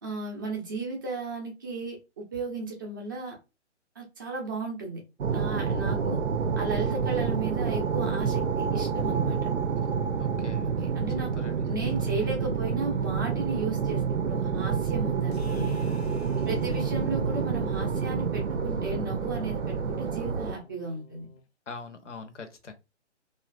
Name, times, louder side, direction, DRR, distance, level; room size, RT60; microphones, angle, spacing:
voice 1, 0.0-2.0 2.3-3.4 4.0-5.0 5.3-6.2 6.6-9.5 10.8-15.8 16.5-21.3, right 3 dB, 20° right, 0 dB, 0.5 m, -34 dB
sound 1, 5.2-20.5, right 6 dB, 85° right, 0.6 m, -28 dB
voice 2, 5.7-6.3 10.2-10.7 11.2-11.7 16.3-16.7 21.7-22.7, left 3 dB, 75° left, 8 dB, 0.8 m, -43 dB
sound 2, 15.3-21.4, left 4 dB, 60° left, 0.5 m, -50 dB
2.9 x 2.4 x 2.2 m, 0.27 s
figure-of-eight pair, 135°, 36 cm